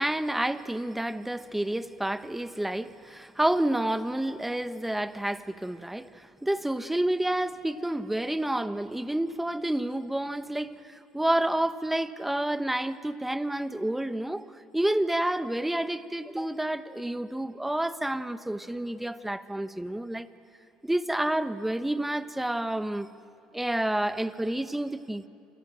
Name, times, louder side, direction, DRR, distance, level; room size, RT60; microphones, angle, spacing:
voice 1, 0.0-14.5 14.7-20.3 20.8-23.1 23.5-25.3, right 1 dB, 5° right, 1.2 m, -29 dB
29.0 x 25.0 x 7.7 m
hypercardioid pair, 70°, 3 cm